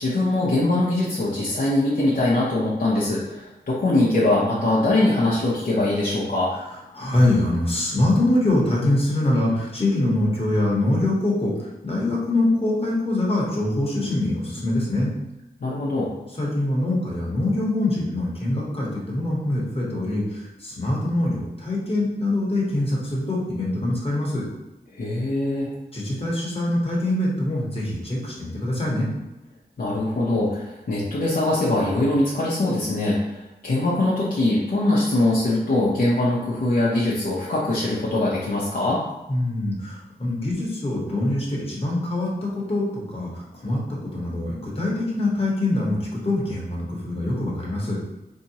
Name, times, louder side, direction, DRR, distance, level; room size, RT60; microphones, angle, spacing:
voice 1, 0.0-6.5 15.6-16.1 24.9-25.7 29.8-39.0, left 2 dB, 55° left, -7 dB, 0.7 m, -22 dB
voice 2, 6.9-15.1 16.4-24.4 25.9-29.1 39.3-48.0, left 1 dB, 35° left, -5 dB, 1.1 m, -24 dB
4.2 x 2.7 x 2.9 m, 0.98 s
wide cardioid pair, 125°, 17 cm